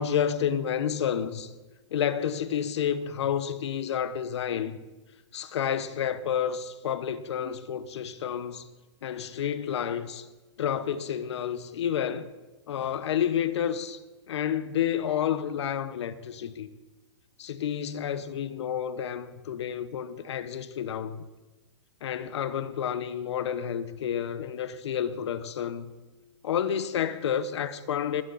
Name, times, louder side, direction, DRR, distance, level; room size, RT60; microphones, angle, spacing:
voice 1, 0.0-1.5 1.9-4.8 5.3-8.7 9.0-10.3 10.6-12.3 12.7-14.0 14.3-16.7 17.4-21.3 22.0-25.9 26.4-28.2, left 9 dB, 80° left, 1.0 m, -30 dB
20.0 x 11.0 x 4.2 m
supercardioid pair, 160°, 14 cm